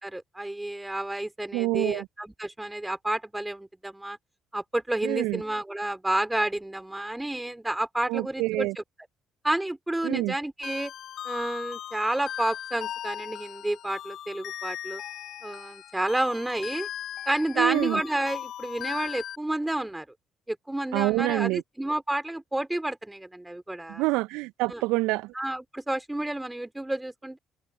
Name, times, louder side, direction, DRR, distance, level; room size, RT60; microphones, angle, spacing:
voice 1, 0.0-4.2 4.5-8.8 9.4-10.9 11.2-15.0 15.4-16.9 17.3-20.1 20.5-24.0 24.7-24.8 25.3-27.4, right 1 dB, 10° right, 5.2 m, -30 dB
voice 2, 1.5-2.0 5.0-5.4 8.1-8.7 10.0-10.3 17.6-18.0 20.9-21.6 23.9-25.3, right 22 dB, 65° right, 2.4 m, -26 dB
sound 1, 10.6-19.4, left 11 dB, 55° left, 4.8 m, -38 dB
figure-of-eight pair, 45°, 0 cm